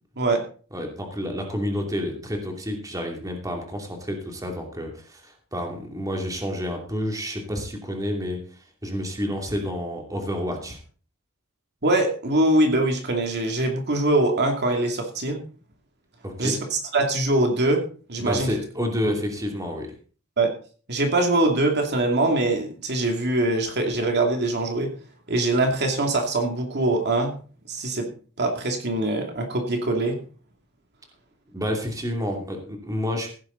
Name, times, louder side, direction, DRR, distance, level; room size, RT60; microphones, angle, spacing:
voice 1, 0.7-10.8 16.2-16.6 18.2-19.9 31.5-33.4, equal, 15° right, 2 dB, 2.7 m, -29 dB
voice 2, 11.8-15.4 16.4-17.8 18.1-18.5 20.4-20.5 20.9-24.9 25.3-27.4 27.7-28.1 28.4-30.2, right 2 dB, 50° right, 3 dB, 2.5 m, -23 dB
16.0 x 10.5 x 3.9 m, 0.40 s
head